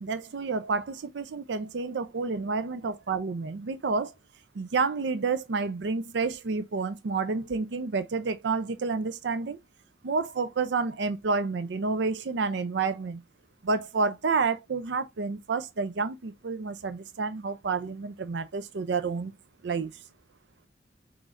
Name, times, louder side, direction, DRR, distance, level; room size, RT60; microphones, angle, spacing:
voice 1, 0.0-4.1 4.6-9.6 10.0-13.2 13.6-19.3 19.6-19.9, right 4 dB, 75° right, 0.5 m, -29 dB
6.1 x 3.1 x 2.5 m
head